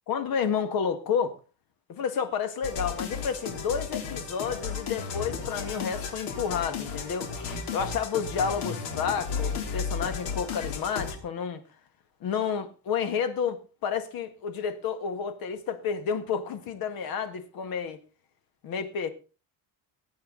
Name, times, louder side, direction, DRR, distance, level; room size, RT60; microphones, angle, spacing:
voice 1, 0.1-1.4 1.9-7.3 7.7-11.6 12.2-18.0 18.6-19.1, left 6 dB, 55° left, 1.9 m, -30 dB
sound 1, 2.6-11.2, left 6 dB, 75° left, 3.5 m, -34 dB
20.0 x 8.6 x 4.0 m
cardioid pair, 155°, 41 cm